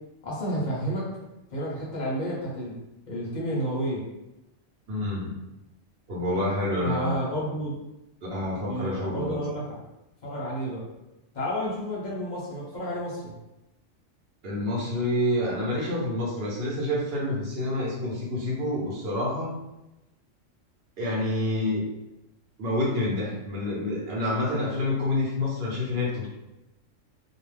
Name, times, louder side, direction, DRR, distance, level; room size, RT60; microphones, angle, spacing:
voice 1, 0.2-1.2 1.5-2.7 3.1-4.1 6.8-7.8 8.6-9.6 10.2-10.8 11.3-13.3, equal, 45° left, -6 dB, 0.7 m, -31 dB
voice 2, 4.9-5.3 6.1-7.3 8.2-9.6 14.4-19.6 21.0-21.9 22.6-26.3, left 1 dB, 55° right, -5 dB, 0.9 m, -28 dB
2.4 x 2.1 x 3.2 m, 0.95 s
omnidirectional pair, 1.4 m